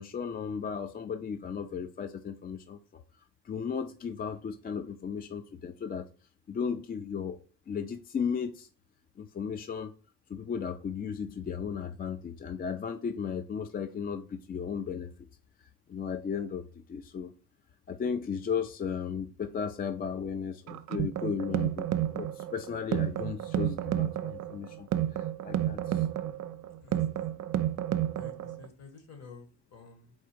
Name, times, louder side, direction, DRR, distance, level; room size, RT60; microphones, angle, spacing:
voice 1, 0.0-3.0 3.4-6.1 6.5-7.4 7.7-8.7 9.2-9.9 10.3-15.1 15.9-17.3 17.9-21.9 22.1-26.1, left 6 dB, 30° left, 0.4 m, -35 dB
sound 1, 20.7-28.7, right 12 dB, 65° right, 0.5 m, -31 dB
voice 2, 26.8-27.3 28.1-30.1, left 4 dB, 60° left, 1.4 m, -51 dB
4.3 x 2.4 x 4.5 m
cardioid pair, 90°, 30 cm